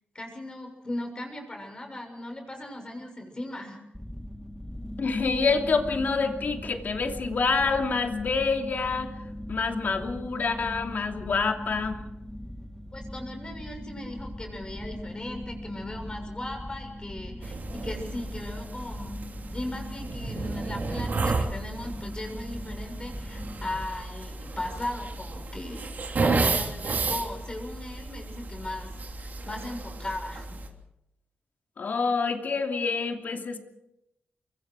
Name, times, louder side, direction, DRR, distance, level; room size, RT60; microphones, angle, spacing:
voice 1, 0.1-3.8 12.9-19.2 19.5-30.6, left 1 dB, 25° left, 3 dB, 6.9 m, -38 dB
sound 1, 3.9-23.9, equal, 5° left, 1.9 m, -40 dB
voice 2, 5.0-9.1 9.5-12.0 31.8-33.6, left 4 dB, 60° left, 4 dB, 2.8 m, -27 dB
sound 2, 17.4-30.7, right 3 dB, 55° right, 3.1 m, -32 dB
25.5 x 22.5 x 4.8 m, 0.84 s
cardioid pair, 80°, 3 cm